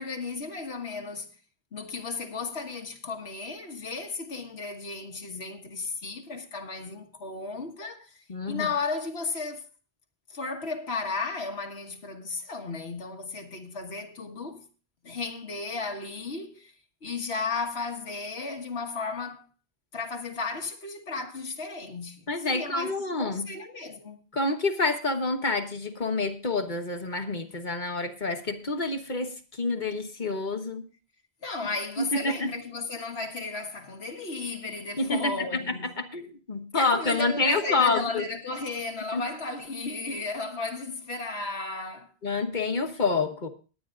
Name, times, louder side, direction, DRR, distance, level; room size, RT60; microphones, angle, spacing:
voice 1, 0.0-1.3 1.7-9.7 10.3-14.7 15.0-16.7 17.0-19.5 19.9-24.3 31.4-36.0 36.7-42.1, left 4 dB, 85° left, 1.7 m, -34 dB
voice 2, 8.3-8.7 22.3-23.5 24.3-30.8 32.0-32.5 35.0-38.2 39.1-39.2 42.2-43.5, left 3 dB, 50° left, 1.3 m, -28 dB
21.0 x 9.4 x 2.5 m
omnidirectional pair, 1.1 m